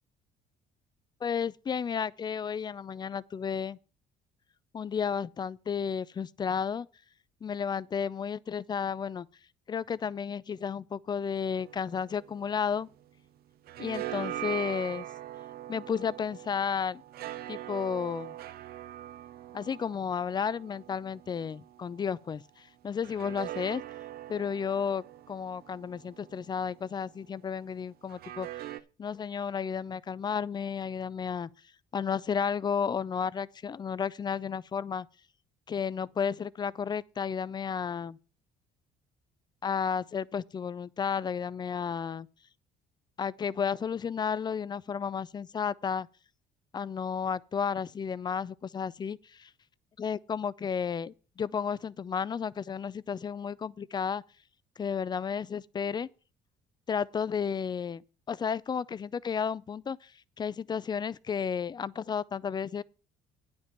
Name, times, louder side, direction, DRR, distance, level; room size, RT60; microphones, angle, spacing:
voice 1, 1.2-3.8 4.7-6.9 7.4-9.3 9.7-12.9 13.8-15.0 15.7-17.0 17.5-18.3 19.5-23.8 24.3-28.6 29.0-31.5 31.9-35.1 35.7-38.2 39.6-42.3 43.2-46.1 46.7-49.5 50.0-54.2 54.8-56.1 56.9-58.0 58.3-60.1 60.4-62.8, left 7 dB, 25° left, 0.4 m, -32 dB
sound 1, 11.5-13.2 13.5-22.2 23.0-27.1 28.1-28.8, right 13 dB, 65° right, 0.6 m, -42 dB
9.6 x 5.3 x 7.3 m
cardioid pair, 110°, 17 cm